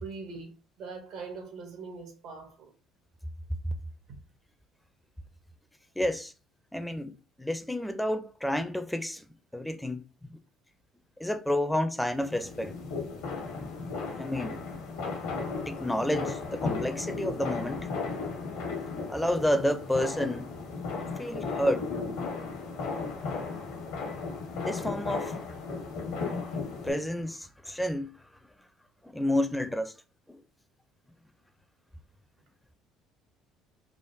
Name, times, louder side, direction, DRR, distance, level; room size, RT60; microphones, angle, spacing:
voice 1, 0.0-2.7 4.1-4.2, right 4 dB, 70° right, 0.8 m, -42 dB
voice 2, 6.0-6.3 6.7-7.1 7.4-9.3 9.5-10.4 11.2-12.7 14.2-14.6 15.6-17.9 19.1-20.5 21.2-21.9 24.6-25.4 26.8-28.1 29.0-29.9 30.3-30.4, left 1 dB, 5° left, 0.4 m, -30 dB
sound 1, 12.1-26.9, left 4 dB, 85° left, 1.0 m, -35 dB
3.5 x 2.1 x 2.6 m
supercardioid pair, 70°, 0 cm